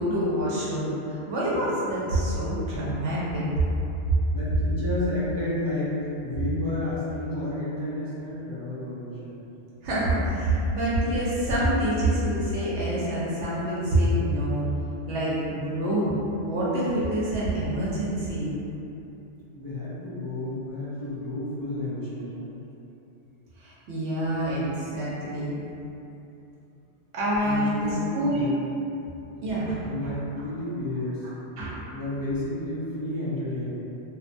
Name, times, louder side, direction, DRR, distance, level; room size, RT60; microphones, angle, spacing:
voice 1, 0.0-3.4 9.8-14.7 15.1-16.1 16.4-18.5 23.6-25.5 27.1-28.5 29.4-30.1 31.6-31.8, right 1 dB, 85° right, -8 dB, 0.9 m, -26 dB
voice 2, 4.3-5.9 6.2-9.5 19.5-22.6 27.4-28.6 29.3-29.5 29.8-31.2 31.5-31.6 31.9-33.7, left 1 dB, 35° left, -10 dB, 0.3 m, -31 dB
2.6 x 2.2 x 2.5 m, 2.9 s
omnidirectional pair, 1.1 m